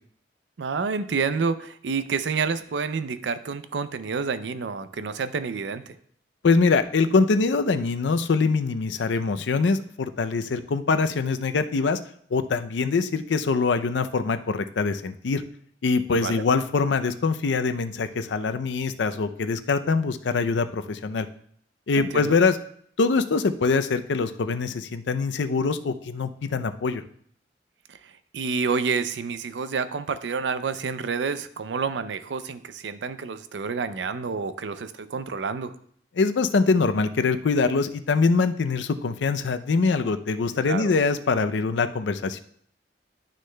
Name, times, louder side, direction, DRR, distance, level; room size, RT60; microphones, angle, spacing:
voice 1, 0.6-6.0 16.1-16.4 22.0-22.4 27.9-35.7 40.7-40.9, right 5 dB, 75° right, 12 dB, 0.5 m, -29 dB
voice 2, 6.4-12.0 12.3-15.4 15.8-21.3 21.9-22.6 23.0-27.0 36.2-42.4, left 4 dB, 80° left, 10 dB, 0.5 m, -23 dB
11.5 x 6.3 x 2.2 m, 0.64 s
head